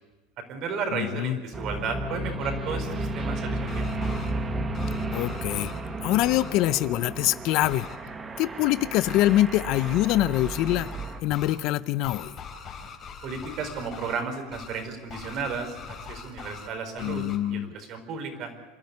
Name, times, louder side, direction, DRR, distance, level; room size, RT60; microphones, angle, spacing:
voice 1, 0.4-3.9 13.2-18.5, right 5 dB, 50° right, 6 dB, 4.5 m, -33 dB
voice 2, 0.9-1.4 5.1-5.7 6.0-7.9 8.4-10.9 11.2-12.3 17.0-17.7, left 15 dB, 55° left, 16 dB, 0.7 m, -24 dB
sound 1, 1.5-11.2, right 2 dB, 20° right, 1.6 m, -33 dB
sound 2, 3.6-4.3 4.7-5.8 6.2-6.5 7.6-8.0 9.1-9.4 9.7-10.0 10.3-11.6 12.0-14.2 14.5-14.8 15.1-16.7 17.0-17.4, left 6 dB, 35° left, 3.7 m, -42 dB
27.0 x 12.0 x 9.5 m, 1.2 s
supercardioid pair, 130°, 0 cm